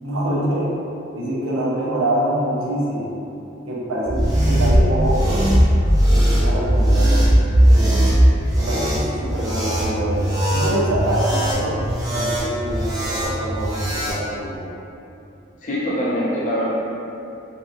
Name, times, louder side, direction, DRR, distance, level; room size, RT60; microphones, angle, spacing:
voice 1, 0.0-0.7 1.1-3.2 3.7-5.5 6.1-7.2 7.6-8.1 8.6-10.2 10.5-14.7, right 1 dB, 85° right, -6 dB, 0.6 m, -25 dB
sound 1, 4.0-14.2, equal, 20° right, 0.4 m, -18 dB
voice 2, 15.6-16.7, equal, 40° left, -6 dB, 0.5 m, -23 dB
2.8 x 2.4 x 2.2 m, 2.7 s
head